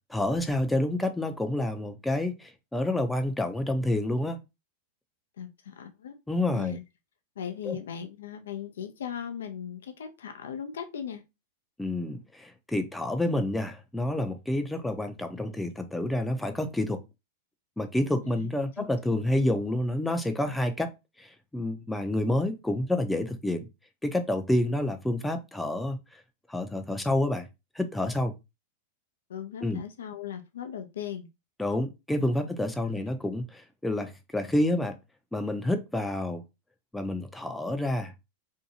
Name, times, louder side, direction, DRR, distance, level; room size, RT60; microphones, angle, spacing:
voice 1, 0.1-4.4 6.3-6.8 7.6-7.8 11.8-17.0 17.8-23.7 24.0-26.2 26.5-27.5 27.8-28.3 29.6-29.8 31.6-34.9 35.3-36.4 36.9-38.1, left 1 dB, 5° left, 0.4 m, -29 dB
voice 2, 5.4-6.2 6.5-6.8 7.4-11.2 18.4-18.5 18.8-18.9 29.3-31.3 32.9-33.0, left 8 dB, 85° left, 0.4 m, -38 dB
2.6 x 2.2 x 2.7 m
hypercardioid pair, 120°, 0 cm